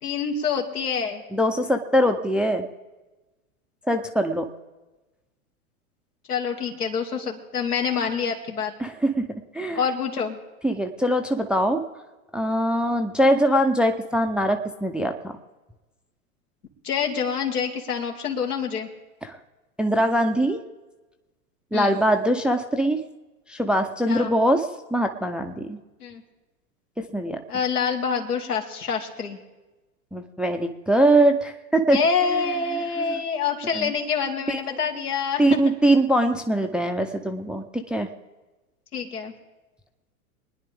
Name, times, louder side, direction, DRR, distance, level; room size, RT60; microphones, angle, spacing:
voice 1, 0.0-1.2 6.3-8.7 9.7-10.4 16.8-18.9 21.7-22.0 24.1-24.3 26.0-26.2 27.5-29.4 31.9-35.4 38.9-39.3, left 6 dB, 85° left, 2 dB, 2.2 m, -26 dB
voice 2, 1.3-2.7 3.9-4.5 8.8-9.3 9.5-9.8 10.6-11.8 12.3-15.3 19.2-19.3 19.8-20.6 21.7-23.0 23.5-25.8 27.0-27.4 30.1-32.0 32.7-33.2 33.7-33.9 34.5-34.6 35.4-38.1, right 1 dB, ahead, 5 dB, 0.5 m, -22 dB
25.0 x 10.0 x 3.5 m, 1.1 s
hypercardioid pair, 105°, 44 cm